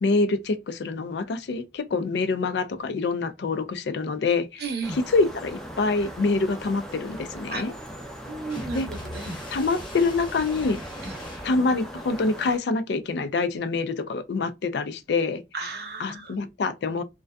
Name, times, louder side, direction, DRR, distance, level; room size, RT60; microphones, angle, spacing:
voice 1, 0.0-4.6 5.1-7.7 8.7-8.9 9.5-10.8 11.4-15.4 16.0-17.0, left 3 dB, 70° left, 0.4 m, -26 dB
voice 2, 4.6-5.0 7.5-7.6 8.3-9.4 11.0-11.1 15.5-16.5, right 4 dB, 65° right, 0.7 m, -34 dB
sound 1, 4.8-12.6, right 1 dB, 5° left, 0.4 m, -39 dB
sound 2, 8.5-11.6, left 1 dB, 30° left, 0.8 m, -41 dB
2.5 x 2.2 x 2.2 m
head